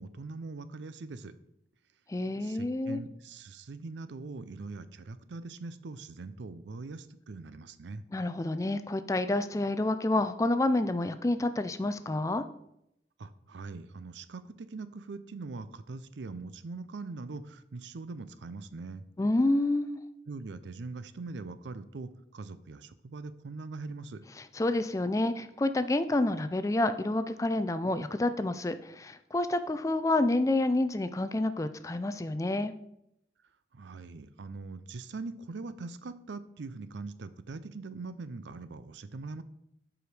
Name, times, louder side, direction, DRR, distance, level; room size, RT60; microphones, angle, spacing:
voice 1, 0.0-1.3 2.4-8.0 13.2-19.0 20.3-24.2 33.7-39.4, right 3 dB, 80° right, 13 dB, 0.5 m, -42 dB
voice 2, 2.1-3.0 8.1-12.5 19.2-20.0 24.4-32.7, left 2 dB, 15° left, 11 dB, 0.3 m, -28 dB
7.9 x 4.9 x 4.9 m, 0.79 s
head